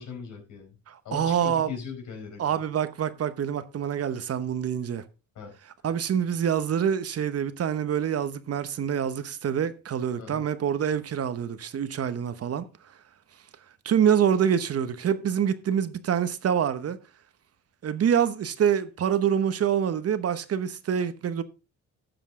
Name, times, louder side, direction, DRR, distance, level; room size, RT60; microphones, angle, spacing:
voice 1, 0.0-0.8 1.0-2.6 5.3-5.5 10.2-10.5, left 6 dB, 80° left, 4.6 m, -39 dB
voice 2, 0.9-1.7 2.4-5.0 5.8-12.6 13.8-17.0 17.8-21.4, right 8 dB, 55° right, 1.0 m, -26 dB
13.0 x 7.2 x 3.7 m
cardioid pair, 90°, 30 cm